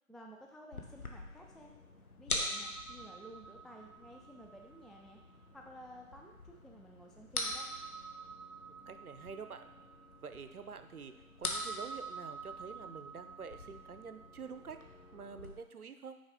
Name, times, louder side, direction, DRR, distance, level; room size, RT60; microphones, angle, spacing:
voice 1, 0.1-1.7 2.2-5.2 5.5-7.7, equal, ahead, 0 dB, 0.3 m, -53 dB
sound 1, 0.7-15.5, left 1 dB, 90° left, 1.2 m, -44 dB
voice 2, 8.9-9.7 10.2-11.1 11.4-14.8 15.1-16.2, right 5 dB, 90° right, 10 dB, 0.7 m, -47 dB
6.3 x 4.9 x 3.6 m, 0.96 s
figure-of-eight pair, 170°, 43 cm